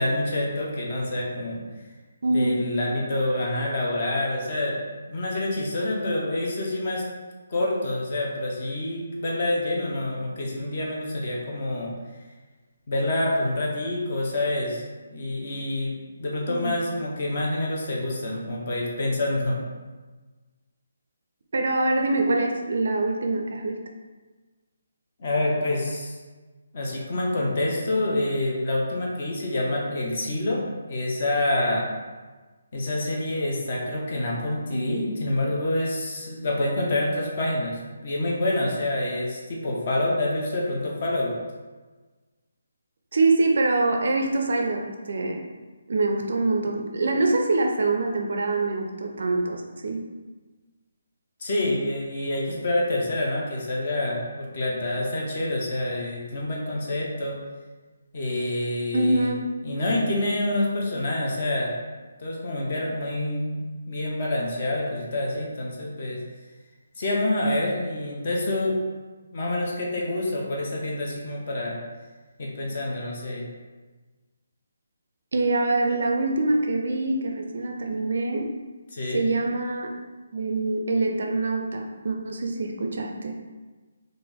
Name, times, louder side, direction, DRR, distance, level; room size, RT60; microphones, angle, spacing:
voice 1, 0.0-1.6 2.3-4.8 5.1-7.0 7.5-11.9 12.9-14.8 15.1-19.6 25.2-26.1 26.7-31.9 32.7-41.3 51.4-57.4 58.1-59.3 59.6-61.7 62.2-66.2 67.0-68.8 69.3-71.8 72.4-73.5 78.9-79.3, left 1 dB, 30° left, -2 dB, 0.6 m, -27 dB
voice 2, 2.2-2.8 16.5-16.8 21.5-23.8 34.7-35.1 43.1-45.4 45.9-50.0 58.9-59.5 75.3-78.5 79.1-79.9 80.3-83.3, right 2 dB, 50° right, 2 dB, 0.4 m, -24 dB
3.5 x 2.5 x 3.4 m, 1.3 s
hypercardioid pair, 180°, 0 cm